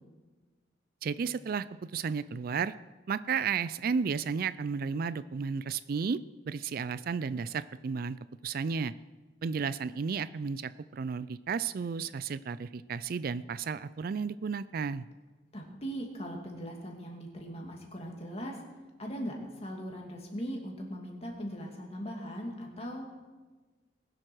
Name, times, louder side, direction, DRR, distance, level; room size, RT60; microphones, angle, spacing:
voice 1, 1.0-2.7 3.1-6.2 6.5-8.2 8.4-8.9 9.4-15.1, right 5 dB, 50° right, 16 dB, 0.4 m, -33 dB
voice 2, 15.5-18.6 19.0-23.2, equal, 35° left, 1 dB, 2.6 m, -39 dB
20.0 x 7.7 x 6.2 m, 1.3 s
head